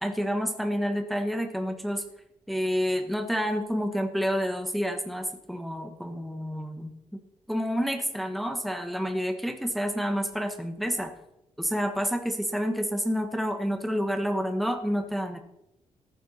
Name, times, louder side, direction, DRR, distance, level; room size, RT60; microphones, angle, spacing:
voice 1, 0.0-2.0 2.5-6.9 7.5-11.1 11.6-15.4, equal, ahead, 5 dB, 1.2 m, -29 dB
15.0 x 14.0 x 4.2 m, 0.85 s
wide cardioid pair, 160°, 13 cm